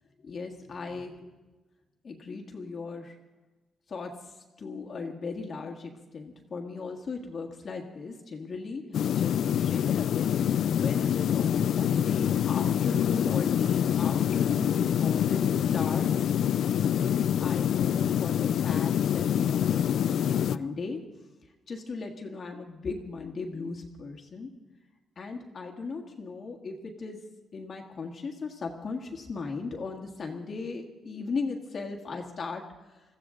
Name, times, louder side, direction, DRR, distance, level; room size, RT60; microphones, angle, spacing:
voice 1, 0.2-1.3 2.0-3.2 3.9-8.8 9.2-16.1 16.3-21.0 21.7-24.5 25.2-27.2 27.5-32.6, left 4 dB, 40° left, 2 dB, 1.7 m, -37 dB
sound 1, 8.9-20.6, left 9 dB, 70° left, 0.4 m, -26 dB
22.0 x 15.0 x 3.8 m, 1.2 s
cardioid pair, 140°, 0 cm